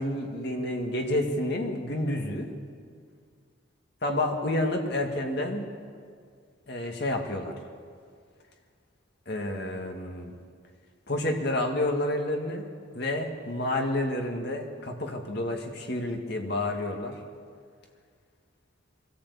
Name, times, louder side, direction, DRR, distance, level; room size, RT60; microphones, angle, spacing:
voice 1, 0.0-2.5 4.0-5.7 6.7-7.5 9.3-10.3 11.1-12.6 12.9-17.2, left 1 dB, 55° left, 2 dB, 2.0 m, -29 dB
23.5 x 14.0 x 8.4 m, 2.1 s
head